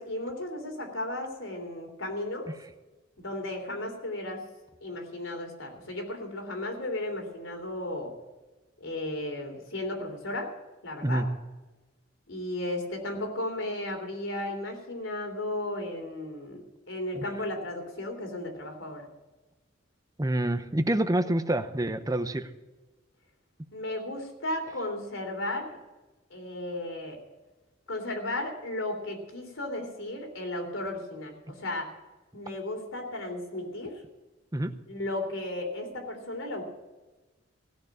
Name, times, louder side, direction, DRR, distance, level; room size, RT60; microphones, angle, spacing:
voice 1, 0.0-2.5 3.2-4.4 4.8-8.1 8.8-10.5 10.8-11.2 12.3-19.1 23.7-25.8 26.3-27.2 27.9-31.9 32.3-34.0 34.9-36.7, left 1 dB, 85° left, 3 dB, 3.3 m, -35 dB
voice 2, 20.2-22.5 34.5-34.7, right 1 dB, 20° right, 10 dB, 0.7 m, -27 dB
17.0 x 6.7 x 8.7 m, 1.1 s
head